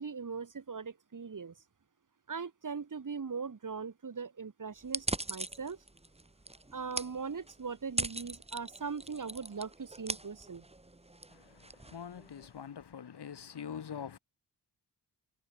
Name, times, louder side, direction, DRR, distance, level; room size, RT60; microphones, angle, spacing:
voice 1, 0.0-1.5 2.3-5.8 6.7-10.6, right 5 dB, 50° right, 7.1 m, -40 dB
sound 1, 4.8-12.6, right 2 dB, 15° right, 6.2 m, -41 dB
voice 2, 11.3-14.2, left 8 dB, 70° left, 3.2 m, -44 dB
wide cardioid pair, 145°, 41 cm